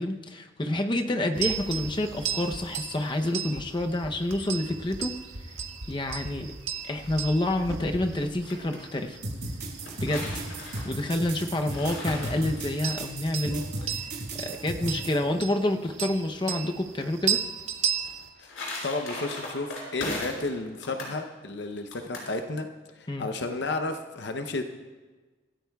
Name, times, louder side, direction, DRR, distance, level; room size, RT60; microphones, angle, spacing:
voice 1, 0.0-5.2 5.9-6.5 6.9-9.2 10.0-10.3 10.8-17.4 23.1-23.3, left 1 dB, 25° left, 5 dB, 0.7 m, -28 dB
sound 1, 1.3-18.3, right 8 dB, 90° right, 1.5 m, -36 dB
sound 2, 8.2-8.8 9.6-12.9 18.0-20.5 20.8-21.2 21.9-22.3, left 2 dB, 90° left, 5.0 m, -37 dB
sound 3, 9.2-15.1, right 2 dB, 60° right, 5.4 m, -35 dB
voice 2, 18.8-22.7 23.0-24.6, left 2 dB, 60° left, 6 dB, 0.7 m, -32 dB
25.5 x 14.0 x 2.3 m, 1.3 s
head